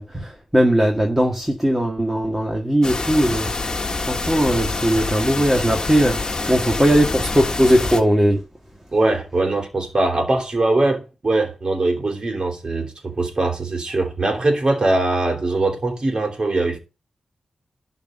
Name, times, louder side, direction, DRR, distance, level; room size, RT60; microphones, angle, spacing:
voice 1, 0.0-3.5 4.1-8.4, equal, 10° right, 1.9 m, -19 dB
sound 1, 2.8-8.0, left 3 dB, 35° left, 1.6 m, -26 dB
voice 2, 8.9-16.8, right 2 dB, 40° right, 3.3 m, -21 dB
11.5 x 4.2 x 6.6 m
wide cardioid pair, 90°, 2 cm